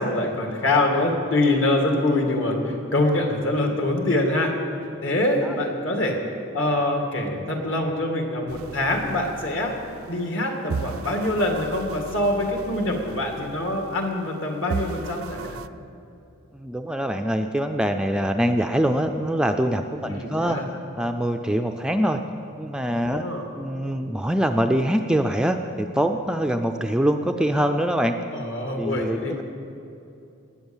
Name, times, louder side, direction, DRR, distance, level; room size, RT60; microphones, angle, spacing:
voice 1, 0.0-4.5 5.0-6.2 6.5-9.7 10.1-15.6 20.0-20.6 23.1-23.4 28.3-29.4, left 1 dB, 60° left, 2 dB, 2.3 m, -24 dB
sound 1, 8.5-10.4 10.7-14.4 14.7-15.7, right 5 dB, 80° right, 0.5 m, -36 dB
voice 2, 16.5-20.6 21.0-22.2 22.6-23.3 23.6-28.2 28.8-29.4, equal, 5° right, 5 dB, 0.4 m, -24 dB
19.0 x 8.9 x 7.3 m, 2.7 s
head